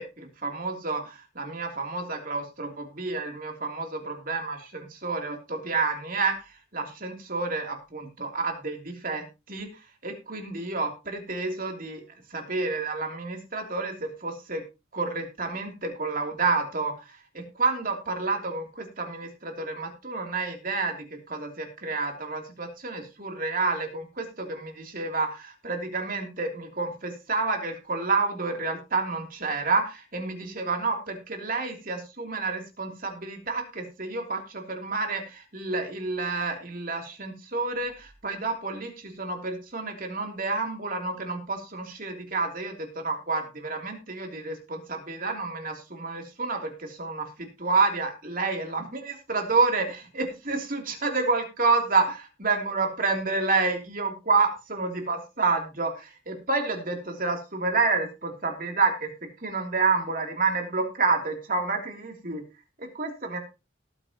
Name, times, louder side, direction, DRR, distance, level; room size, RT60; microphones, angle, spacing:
voice 1, 0.0-6.3 6.7-9.7 10.0-12.0 12.3-14.6 14.9-16.9 17.3-47.3 47.6-59.1 59.4-62.4 62.8-63.4, right 3 dB, 45° right, 3 dB, 3.1 m, -29 dB
18.5 x 9.0 x 3.0 m, 0.27 s
head